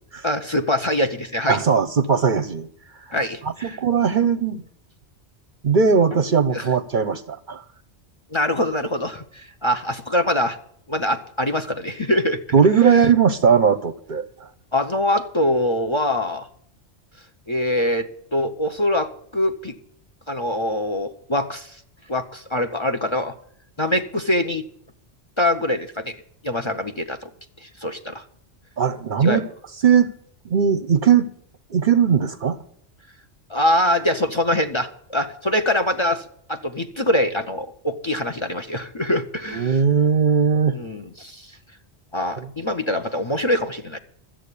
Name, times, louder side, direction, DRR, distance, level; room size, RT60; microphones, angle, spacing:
voice 1, 0.2-1.6 3.1-3.8 6.5-6.7 8.3-10.6 10.9-12.4 12.8-13.1 14.7-16.5 17.5-18.1 18.3-19.8 20.3-21.8 22.1-23.3 23.8-24.7 25.4-26.2 26.4-27.3 27.6-28.2 29.2-29.4 33.5-36.2 36.5-39.8 40.7-41.5 42.1-44.0, left 1 dB, 30° left, 8 dB, 0.7 m, -23 dB
voice 2, 1.5-2.7 3.1-3.2 3.6-4.6 5.6-7.6 12.5-14.3 28.8-29.5 29.8-30.1 30.5-31.3 31.7-32.6 39.5-40.8 42.4-42.5, right 6 dB, 55° right, 14 dB, 0.7 m, -18 dB
13.5 x 7.6 x 8.3 m, 0.66 s
omnidirectional pair, 1.2 m